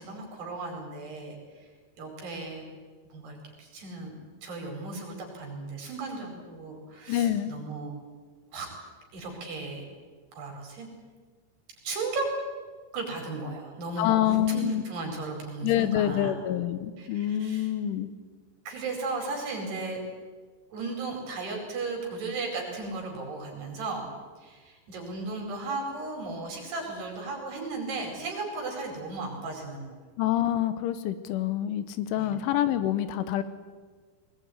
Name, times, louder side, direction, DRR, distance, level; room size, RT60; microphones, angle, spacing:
voice 1, 0.0-1.6 2.0-2.6 3.1-4.2 4.4-7.9 8.5-8.7 9.1-9.8 10.3-10.9 11.8-12.3 12.9-16.4 17.0-17.7 18.7-20.0 20.7-24.1 24.4-30.0 32.1-32.3, right 3 dB, 60° right, 1 dB, 6.7 m, -35 dB
voice 2, 7.1-7.5 14.0-14.8 15.6-18.1 30.2-33.4, left 12 dB, 85° left, 12 dB, 3.5 m, -26 dB
21.0 x 20.0 x 9.6 m, 1.4 s
omnidirectional pair, 5.5 m